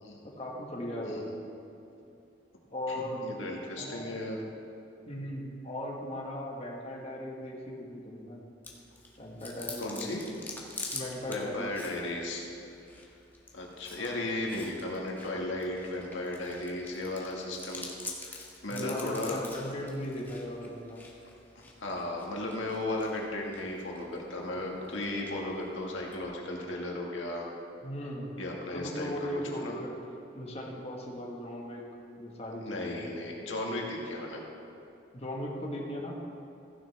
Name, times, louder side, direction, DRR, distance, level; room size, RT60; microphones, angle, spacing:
voice 1, 0.2-1.4 2.7-3.2 3.8-4.0 5.1-8.4 9.2-10.1 10.9-11.7 14.0-14.3 18.7-21.0 27.8-28.3 28.7-30.0 30.3-33.0 35.1-36.1, left 1 dB, 35° left, -2 dB, 1.5 m, -38 dB
voice 2, 2.9-4.4 9.8-10.2 11.3-12.4 13.5-17.9 18.2-19.4 21.6-27.4 28.4-29.7 32.6-34.4, left 1 dB, 90° left, -2 dB, 1.9 m, -35 dB
Chewing mastication, 8.6-26.2, left 3 dB, 10° left, 1.2 m, -47 dB
15.5 x 10.0 x 3.4 m, 2.8 s
head